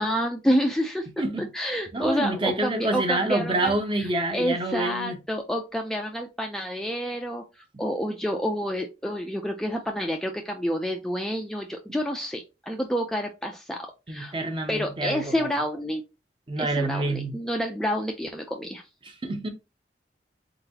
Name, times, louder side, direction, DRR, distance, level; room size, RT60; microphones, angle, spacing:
voice 1, 0.0-1.1 1.5-4.1 4.3-7.4 7.8-13.8 14.1-14.3 14.7-16.0 16.6-18.8, equal, 5° left, 0.4 m, -28 dB
voice 2, 1.2-1.5 1.9-5.2 14.1-15.5 16.5-17.4 19.0-19.5, right 2 dB, 30° right, 0.7 m, -27 dB
4.0 x 3.9 x 2.8 m
head